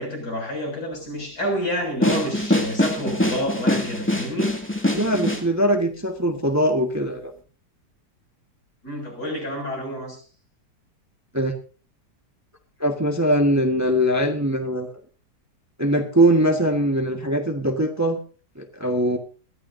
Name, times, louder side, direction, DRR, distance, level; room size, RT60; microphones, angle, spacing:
voice 1, 0.0-4.6 8.8-10.2, equal, 65° left, 7.6 m, -29 dB
sound 1, 2.0-5.4, left 1 dB, 5° left, 2.4 m, -23 dB
voice 2, 4.9-7.3 11.3-11.5 12.8-14.9 15.8-18.2 18.5-19.2, right 1 dB, 10° right, 1.7 m, -21 dB
21.5 x 14.0 x 2.7 m
omnidirectional pair, 1.8 m